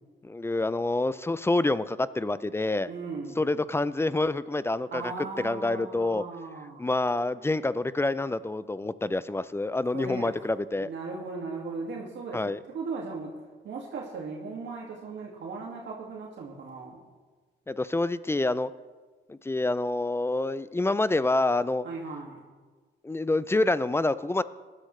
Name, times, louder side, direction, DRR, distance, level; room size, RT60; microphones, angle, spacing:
voice 1, 0.2-2.9 3.4-5.1 5.4-6.2 6.8-10.9 12.3-12.6 17.7-18.7 19.3-21.8 23.0-24.4, left 2 dB, 10° left, 16 dB, 0.4 m, -27 dB
voice 2, 2.9-3.5 4.9-6.9 9.9-10.5 10.8-13.4 13.6-17.0 21.8-22.4, right 4 dB, 65° right, -2 dB, 2.2 m, -37 dB
19.0 x 11.5 x 3.2 m, 1.4 s
cardioid pair, 90°, 20 cm